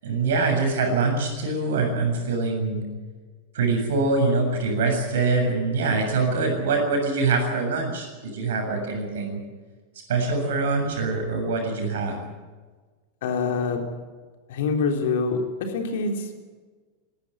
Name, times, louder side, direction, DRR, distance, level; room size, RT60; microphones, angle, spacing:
voice 1, 0.0-2.8 3.5-9.4 10.1-12.2, right 3 dB, 60° right, 4 dB, 7.2 m, -24 dB
voice 2, 13.2-13.8 14.5-16.4, left 4 dB, 55° left, 4 dB, 3.5 m, -25 dB
20.5 x 17.5 x 9.4 m, 1.4 s
figure-of-eight pair, 90°, 0 cm